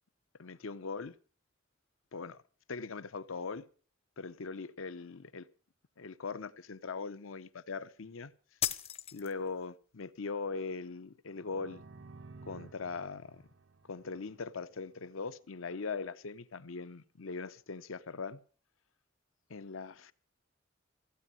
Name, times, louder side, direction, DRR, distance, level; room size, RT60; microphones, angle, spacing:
voice 1, 0.4-1.1 2.1-2.4 2.7-3.7 4.2-5.5 6.0-8.3 9.1-11.8 12.5-13.4 13.9-18.4 19.5-20.1, left 4 dB, 85° left, 0.7 m, -40 dB
sound 1, 8.6-9.6, left 10 dB, 30° left, 0.6 m, -36 dB
sound 2, 11.3-15.0, right 3 dB, 65° right, 0.7 m, -54 dB
15.5 x 8.2 x 7.6 m
head